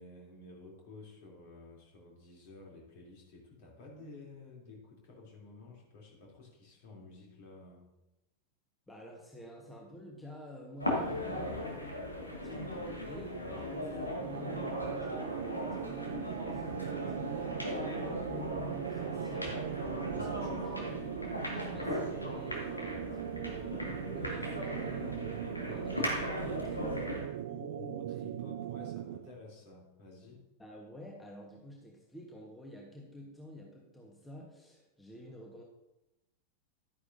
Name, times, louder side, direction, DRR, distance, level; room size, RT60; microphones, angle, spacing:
voice 1, 0.0-7.9 20.0-20.7 27.5-30.4, left 3 dB, 50° left, -2 dB, 3.3 m, -52 dB
voice 2, 8.9-20.7 21.5-26.8 30.6-35.6, left 1 dB, 10° left, -1 dB, 1.4 m, -50 dB
sound 1, 10.8-27.3, left 1 dB, 85° left, 1.9 m, -38 dB
sound 2, 14.2-29.3, right 12 dB, 55° right, 0.4 m, -40 dB
11.5 x 9.7 x 2.7 m, 0.94 s
figure-of-eight pair, 90°, 0 cm